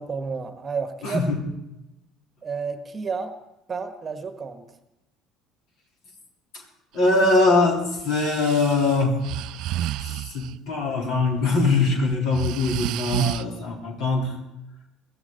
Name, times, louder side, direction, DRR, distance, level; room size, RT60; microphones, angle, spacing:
voice 1, 0.0-1.2 2.4-3.4 3.7-4.7, right 5 dB, 25° right, 10 dB, 1.3 m, -31 dB
voice 2, 1.0-1.4 6.9-9.2 10.0-10.1 10.3-14.3, left 3 dB, 55° left, 1 dB, 3.6 m, -22 dB
Breathing, 8.0-10.5 11.4-11.7 12.1-13.4, right 14 dB, 55° right, 0.5 m, -30 dB
23.0 x 15.0 x 4.0 m, 0.94 s
figure-of-eight pair, 60°, 0 cm